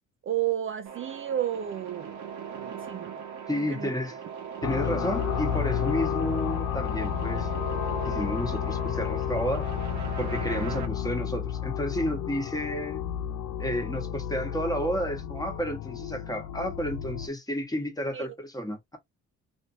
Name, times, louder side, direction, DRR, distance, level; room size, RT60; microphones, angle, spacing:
voice 1, 0.2-2.2 2.5-3.3 3.5-3.9 18.1-18.3, right 11 dB, 45° right, 0.5 m, -32 dB
sound 1, 0.9-10.9, right 7 dB, 70° right, 1.1 m, -39 dB
voice 2, 3.5-4.2 4.6-7.5 8.1-9.7 10.2-13.1 13.6-19.0, equal, 10° left, 1.2 m, -31 dB
sound 2, 4.6-17.3, left 10 dB, 75° left, 0.5 m, -31 dB
3.2 x 2.6 x 2.6 m
cardioid pair, 90°, 30 cm